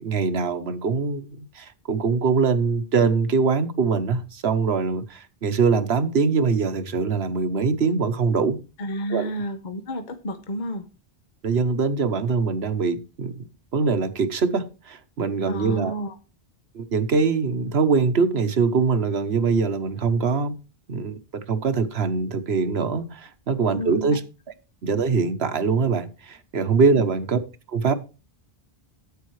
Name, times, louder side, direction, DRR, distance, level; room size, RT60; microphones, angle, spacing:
voice 1, 0.0-8.6 9.1-9.3 11.4-13.4 13.7-15.9 16.7-20.5 20.9-24.2 24.8-27.4 27.7-27.9, right 5 dB, 80° right, 1.3 m, -23 dB
voice 2, 8.8-10.8 15.5-16.1 23.7-24.2 26.9-27.0, equal, 50° left, 1.1 m, -30 dB
13.0 x 8.7 x 3.2 m
omnidirectional pair, 1.0 m